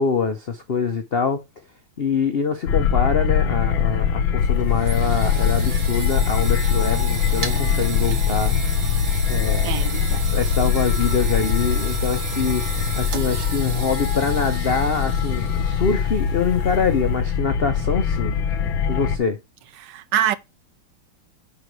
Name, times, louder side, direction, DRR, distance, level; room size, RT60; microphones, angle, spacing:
voice 1, 0.0-1.4 2.0-8.6 9.3-9.7 10.3-18.4 18.9-19.4, left 5 dB, 65° left, 0.5 m, -24 dB
sound 1, 2.7-19.2, left 7 dB, 80° left, 1.6 m, -22 dB
sound 2, 4.4-17.2, right 7 dB, 50° right, 1.3 m, -33 dB
voice 2, 9.6-10.3 19.8-20.4, right 10 dB, 75° right, 1.1 m, -25 dB
8.7 x 5.4 x 3.1 m
omnidirectional pair, 2.1 m